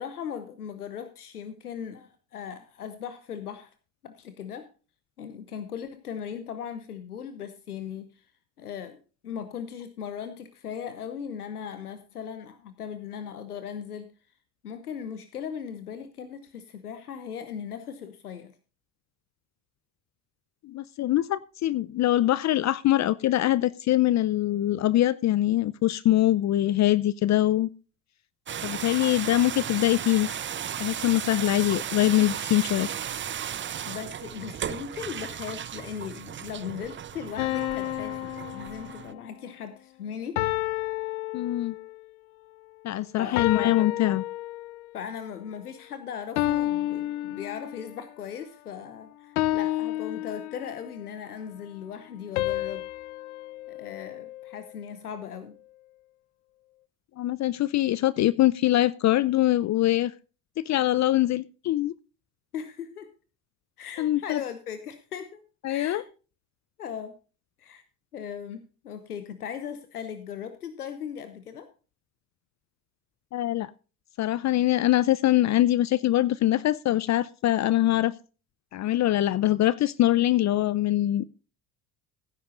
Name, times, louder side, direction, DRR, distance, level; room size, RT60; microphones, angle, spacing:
voice 1, 0.0-3.7 4.0-4.7 5.2-8.3 8.6-9.0 9.2-14.1 14.6-18.5 33.9-40.4 43.1-44.0 44.9-52.8 53.7-55.6 62.5-63.1 63.8-65.4 65.7-66.1 66.8-67.1 67.6-67.8 68.1-71.7, left 8 dB, 90° left, 10 dB, 1.0 m, -38 dB
voice 2, 20.6-27.7 28.6-30.4 30.8-32.9 41.3-41.8 42.8-44.2 57.2-60.1 60.6-61.9 64.0-64.4 65.6-66.0 73.3-73.7 74.2-78.1 78.7-81.3, left 14 dB, 40° left, 18 dB, 0.6 m, -23 dB
sound 1, 28.5-39.1, right 9 dB, 25° right, 0.7 m, -35 dB
sound 2, 37.4-39.3 40.4-42.0 43.4-44.9 46.4-48.0 49.4-51.0 52.4-54.7, left 15 dB, 70° left, 0.8 m, -31 dB
17.5 x 10.0 x 2.5 m, 0.35 s
hypercardioid pair, 65°, 44 cm